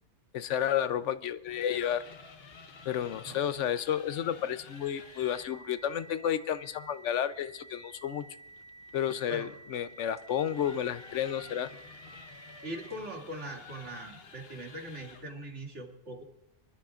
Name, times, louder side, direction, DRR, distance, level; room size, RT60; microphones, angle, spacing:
voice 1, 0.3-2.0 2.9-8.3 8.9-11.7, left 9 dB, 75° left, 13 dB, 1.0 m, -31 dB
sound 1, 1.3-5.6 8.2-15.4, left 5 dB, 55° left, 1.2 m, -51 dB
sound 2, 4.7-13.2, right 2 dB, 5° left, 1.8 m, -52 dB
voice 2, 12.6-16.2, right 1 dB, 65° right, 0 dB, 2.7 m, -41 dB
25.5 x 12.5 x 2.5 m, 0.87 s
omnidirectional pair, 1.3 m